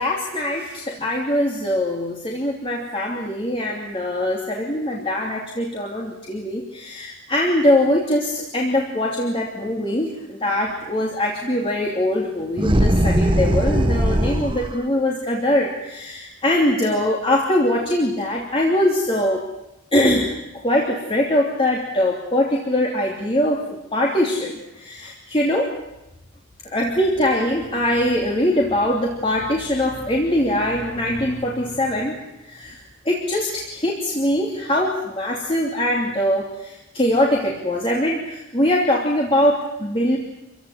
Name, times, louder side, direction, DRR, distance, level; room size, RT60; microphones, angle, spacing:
voice 1, 0.0-19.4 19.9-20.3 20.6-23.6 23.9-25.7 26.7-32.2 32.4-32.8 33.0-40.2, left 1 dB, 25° left, -2 dB, 3.0 m, -22 dB
sound 1, 12.6-14.8, equal, 25° right, 1.2 m, -19 dB
26.5 x 16.5 x 9.9 m, 0.94 s
head